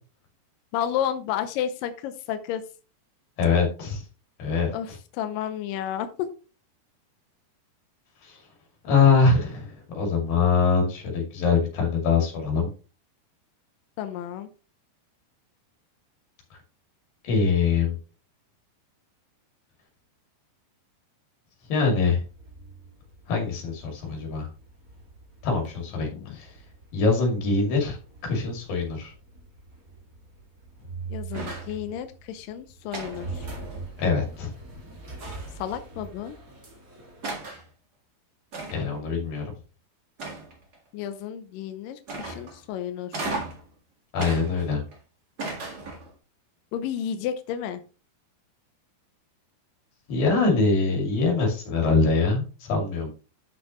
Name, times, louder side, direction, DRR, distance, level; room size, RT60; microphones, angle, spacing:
voice 1, 0.7-2.6 4.7-6.3 14.0-14.5 26.0-26.4 31.1-33.5 34.7-34.8 35.6-36.4 40.9-43.1 46.7-47.8, left 10 dB, 80° left, 9 dB, 2.0 m, -31 dB
voice 2, 3.4-4.0 4.4-4.7 8.2-8.4 8.8-12.7 17.2-18.0 21.7-22.2 23.3-24.5 25.4-26.5 26.9-28.0 28.2-29.1 34.0-34.5 38.7-39.5 44.1-44.8 50.1-53.1, left 4 dB, 60° left, 1 dB, 4.1 m, -23 dB
sound 1, 21.8-37.3, right 3 dB, 35° right, 1.5 m, -44 dB
sound 2, 31.3-31.8 32.9-34.0 35.2-35.7 36.6-36.7 37.2-37.7 38.5-39.0 40.2-40.8 42.1-42.6 43.1-43.7 44.2-45.0 45.4-46.1, right 3 dB, 65° right, 0.9 m, -36 dB
9.7 x 6.2 x 3.0 m, 0.35 s
omnidirectional pair, 4.9 m